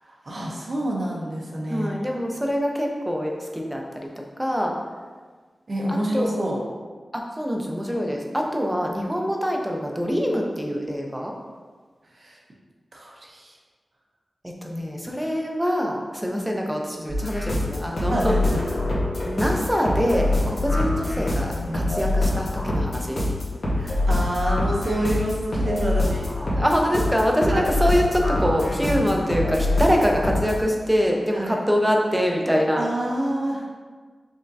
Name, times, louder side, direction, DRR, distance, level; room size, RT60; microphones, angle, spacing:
voice 1, 0.0-2.0 5.7-6.6 12.1-12.4 12.9-13.6 18.1-18.6 20.7-20.8 23.7-26.3 27.5-27.7 31.3-31.6 32.8-33.6, right 1 dB, 50° right, -2 dB, 0.7 m, -28 dB
voice 2, 1.7-4.1 4.4-4.7 5.9-6.4 7.1-11.3 14.4-18.4 19.3-21.5 21.7-23.2 26.5-32.9, equal, 5° right, 0 dB, 0.6 m, -24 dB
sound 1, 17.1-30.6, left 2 dB, 60° left, 1.1 m, -25 dB
5.3 x 3.6 x 2.6 m, 1.5 s
wide cardioid pair, 115°, 0 cm